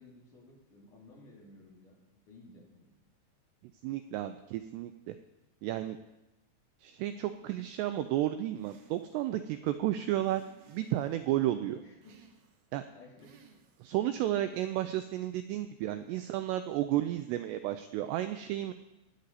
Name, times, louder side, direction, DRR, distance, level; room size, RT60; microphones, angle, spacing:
voice 1, 0.0-2.0 2.3-2.9 10.0-10.1 11.7-12.2 12.9-13.3, left 2 dB, 50° left, -2 dB, 3.0 m, -55 dB
voice 2, 3.8-5.2 5.6-6.0 6.8-10.4 10.7-11.8 12.7-12.8 13.8-18.7, right 13 dB, 90° right, 9 dB, 2.4 m, -32 dB
sound 1, 8.6-9.3 10.2-11.3 12.0-12.7 13.2-14.0, right 5 dB, 65° right, 2.8 m, -61 dB
17.0 x 9.7 x 4.1 m, 0.97 s
omnidirectional pair, 5.4 m